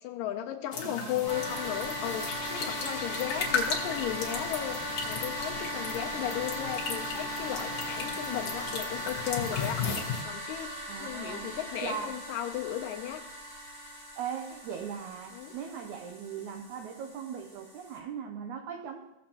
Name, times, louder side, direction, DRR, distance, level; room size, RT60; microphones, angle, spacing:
voice 1, 0.0-10.7 11.0-13.2 15.3-15.6, left 11 dB, 80° left, 4 dB, 2.1 m, -35 dB
sound 1, 0.7-10.2, left 5 dB, 55° left, 1.9 m, -36 dB
voice 2, 0.8-1.4 10.9-11.5 11.8-12.2 14.2-19.1, right 8 dB, 85° right, 3 dB, 1.7 m, -39 dB
sound 2, 1.3-18.0, equal, 40° right, 4.7 m, -38 dB
16.5 x 7.7 x 2.9 m, 1.0 s
omnidirectional pair, 4.2 m